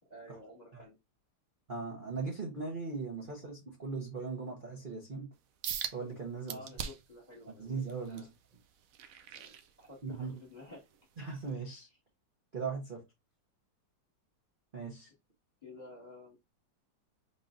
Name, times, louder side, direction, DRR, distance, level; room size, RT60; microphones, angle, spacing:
voice 1, 0.1-0.9 3.2-3.3 6.5-7.6 8.1-8.3 9.3-9.5 9.8-10.9 15.6-16.3, left 1 dB, 20° left, 1.9 m, -51 dB
voice 2, 1.7-5.3 5.9-6.6 7.6-8.3 10.0-10.3 11.2-11.9 12.5-13.0 14.7-15.1, right 4 dB, 35° right, 1.1 m, -39 dB
sound 1, 5.6-6.0 6.5-7.2 7.7-10.2 10.7-11.0 11.5-11.6, right 8 dB, 70° right, 0.8 m, -41 dB
5.4 x 3.7 x 2.6 m
omnidirectional pair, 2.1 m